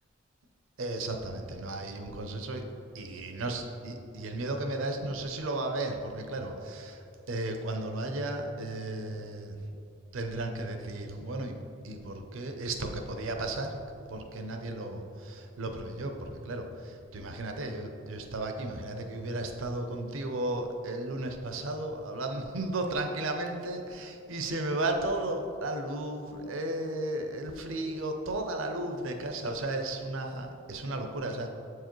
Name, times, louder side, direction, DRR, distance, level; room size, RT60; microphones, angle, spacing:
voice 1, 0.8-2.7 2.9-9.7 10.1-31.5, right 2 dB, 75° right, 5 dB, 0.6 m, -34 dB
7.6 x 4.7 x 3.0 m, 2.6 s
head